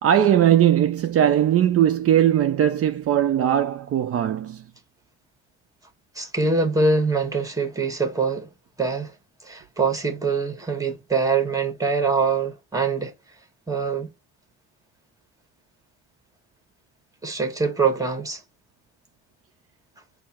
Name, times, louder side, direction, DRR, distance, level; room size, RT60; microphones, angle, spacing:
voice 1, 0.0-4.6, right 10 dB, 50° right, 0.5 m, -19 dB
voice 2, 6.1-8.5 8.8-9.1 9.4-13.1 13.7-14.1 17.2-18.4, right 4 dB, 10° right, 1.4 m, -24 dB
4.5 x 2.0 x 4.4 m
cardioid pair, 90°, 30 cm